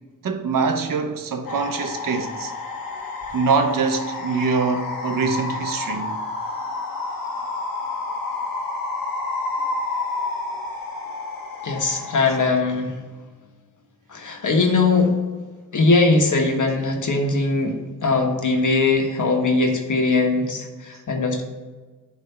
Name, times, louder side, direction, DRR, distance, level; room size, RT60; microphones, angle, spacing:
voice 1, 0.2-2.5 3.3-6.2 12.3-12.4, right 4 dB, 75° right, 0.9 m, -24 dB
sound 1, 1.4-12.5, left 3 dB, 80° left, 1.2 m, -30 dB
voice 2, 11.6-12.9 14.1-15.1 15.7-21.4, left 3 dB, 60° left, 1.4 m, -20 dB
10.0 x 3.5 x 5.6 m
cardioid pair, 60°, 33 cm